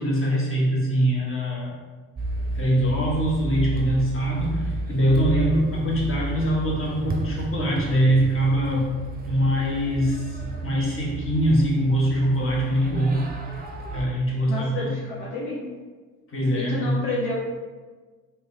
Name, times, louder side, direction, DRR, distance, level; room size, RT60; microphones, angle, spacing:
voice 1, 0.0-1.7 2.5-9.0 9.3-13.4 13.9-14.9 16.3-17.0, right 1 dB, 30° left, -4 dB, 1.2 m, -23 dB
sound 1, 2.2-14.1, right 1 dB, 20° right, 0.7 m, -32 dB
voice 2, 14.5-15.6 16.5-17.3, left 3 dB, 70° left, -5 dB, 0.8 m, -29 dB
3.5 x 2.9 x 3.2 m, 1.4 s
figure-of-eight pair, 45°, 40 cm